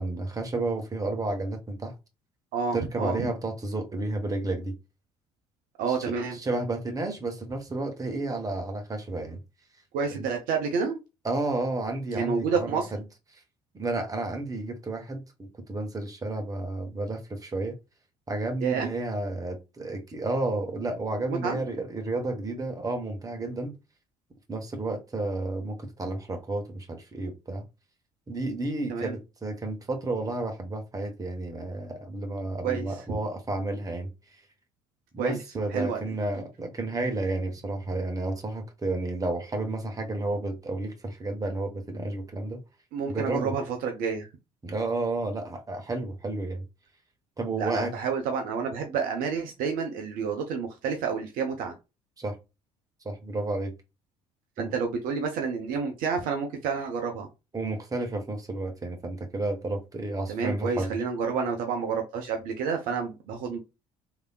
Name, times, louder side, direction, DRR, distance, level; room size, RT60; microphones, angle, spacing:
voice 1, 0.0-1.9 2.7-4.7 5.9-6.0 6.3-9.4 10.1-10.3 11.2-13.0 13.7-17.8 18.3-23.7 24.5-27.6 28.3-34.1 35.1-42.6 43.1-43.5 44.6-46.6 47.4-47.9 52.2-52.4 53.0-53.7 54.6-54.8 57.5-61.0, right 2 dB, 20° right, 1.1 m, -31 dB
voice 2, 2.5-3.2 5.8-6.4 9.9-11.0 12.1-12.9 18.6-18.9 21.4-21.6 28.9-29.2 32.6-33.2 35.2-35.4 35.7-36.1 42.9-44.3 47.6-51.7 54.6-57.3 60.3-63.6, right 5 dB, 55° right, 0.7 m, -29 dB
3.4 x 2.8 x 2.2 m
figure-of-eight pair, 55°, 17 cm